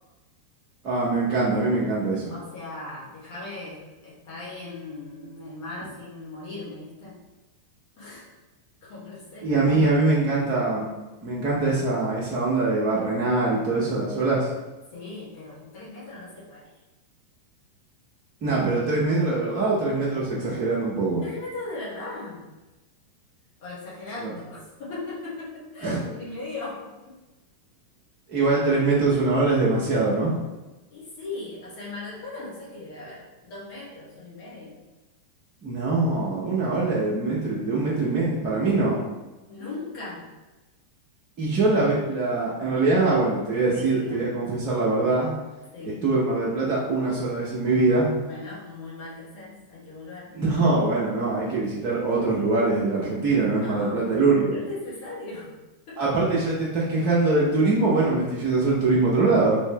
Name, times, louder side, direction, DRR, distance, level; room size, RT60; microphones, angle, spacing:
voice 1, 0.8-2.3 9.4-10.9 11.2-14.5 18.4-21.2 24.2-24.3 25.8-26.0 28.3-30.3 35.6-39.0 41.4-45.3 46.0-48.1 50.3-54.6 56.0-59.6, right 3 dB, 35° right, -6 dB, 0.9 m, -23 dB
voice 2, 2.3-7.2 8.0-8.3 8.8-9.5 14.9-16.7 21.2-22.5 23.6-27.1 30.9-34.8 39.5-40.3 43.7-44.2 45.7-46.0 48.2-50.3 53.6-54.2 54.5-55.5 55.9-56.0, left 2 dB, 45° left, -8 dB, 1.3 m, -38 dB
3.1 x 2.8 x 3.4 m, 1.1 s
figure-of-eight pair, 90°, 0 cm